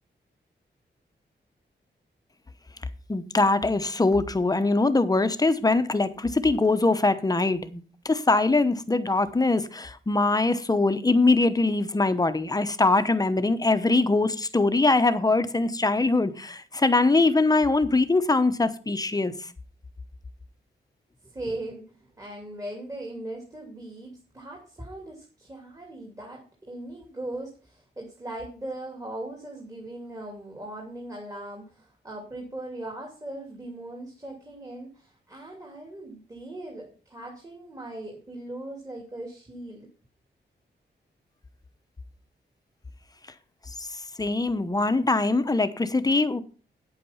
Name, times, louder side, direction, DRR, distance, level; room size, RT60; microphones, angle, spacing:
voice 1, 3.1-19.5 43.8-46.4, left 3 dB, 20° left, 0.9 m, -23 dB
voice 2, 21.2-39.9, right 1 dB, 20° right, 2.7 m, -39 dB
9.5 x 8.4 x 5.7 m
wide cardioid pair, 125°, 18 cm